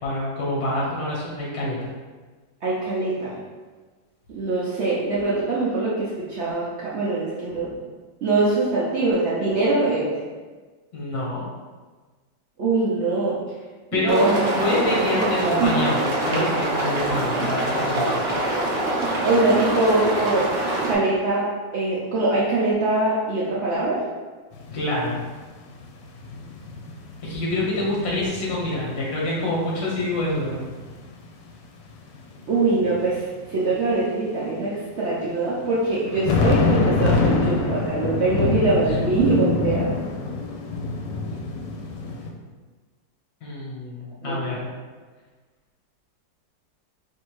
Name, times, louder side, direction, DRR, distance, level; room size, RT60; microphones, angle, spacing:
voice 1, 0.0-1.9 10.9-11.4 13.9-14.3 14.6-18.3 24.7-25.1 27.2-30.7 38.8-39.0 43.4-44.0 44.2-44.6, left 1 dB, 45° left, -5 dB, 0.9 m, -26 dB
voice 2, 2.6-3.4 4.3-7.7 8.2-10.1 12.6-13.4 13.9-14.5 15.1-15.9 19.2-20.5 20.8-24.0 32.5-39.9 44.2-44.4, right 2 dB, 85° right, -7 dB, 0.5 m, -23 dB
sound 1, 14.1-20.9, right 1 dB, 50° right, 0.7 m, -25 dB
sound 2, 24.5-24.9 25.2-31.3 31.9-33.3 35.9-42.3, left 3 dB, 75° left, 1.2 m, -26 dB
3.4 x 2.7 x 4.6 m, 1.4 s
omnidirectional pair, 2.0 m